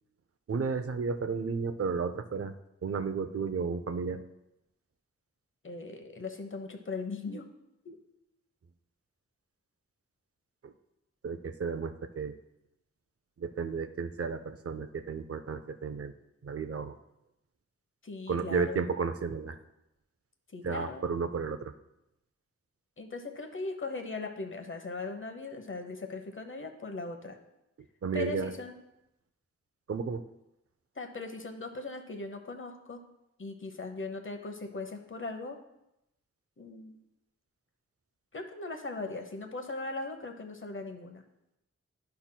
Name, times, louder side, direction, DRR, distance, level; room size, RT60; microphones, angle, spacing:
voice 1, 0.5-2.5 2.8-4.2 10.6-10.7 11.2-12.3 13.4-16.1 16.4-17.0 18.3-19.6 20.6-21.7 28.0-28.5 29.9-30.2, right 5 dB, 50° right, 10 dB, 0.6 m, -33 dB
voice 2, 5.6-7.4 7.8-8.0 18.0-18.8 20.5-21.0 23.0-27.4 28.1-28.8 31.0-33.0 33.4-35.6 36.6-37.0 38.3-41.2, left 3 dB, 45° left, 5 dB, 1.0 m, -39 dB
12.0 x 5.7 x 2.2 m, 0.87 s
wide cardioid pair, 65°, 29 cm